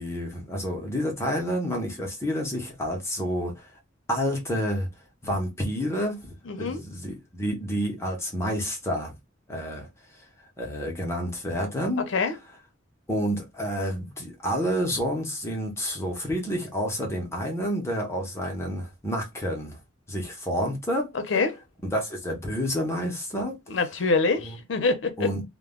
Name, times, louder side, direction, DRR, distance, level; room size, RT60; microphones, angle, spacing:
voice 1, 0.0-3.7 4.1-4.9 5.2-9.1 9.5-9.9 10.6-12.1 13.1-19.8 20.1-21.1 21.9-23.6 24.4-24.5 25.2-25.4, equal, 15° left, 0.7 m, -29 dB
voice 2, 6.5-6.8 12.0-12.3 21.1-21.6 23.7-25.3, left 4 dB, 70° left, 0.6 m, -25 dB
2.2 x 2.1 x 3.5 m
head